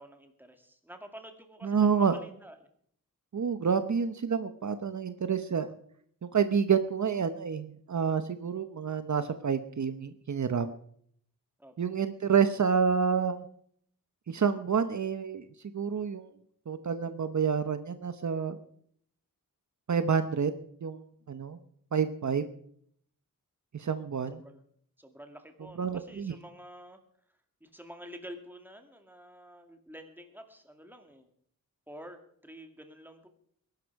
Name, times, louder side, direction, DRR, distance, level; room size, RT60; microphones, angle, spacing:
voice 1, 0.0-2.6 11.6-11.7 24.3-24.6 25.0-27.0 27.6-31.3 31.9-32.2 32.4-33.3, equal, 5° right, 5 dB, 2.2 m, -49 dB
voice 2, 1.6-2.2 3.3-5.7 6.3-10.7 11.8-13.5 14.3-15.5 15.7-16.3 16.7-18.6 19.9-20.5 20.8-21.0 21.3-21.6 21.9-22.5 23.7-24.4 25.8-26.3, right 6 dB, 55° right, 10 dB, 0.9 m, -28 dB
20.5 x 12.0 x 4.7 m, 0.64 s
wide cardioid pair, 120°, 34 cm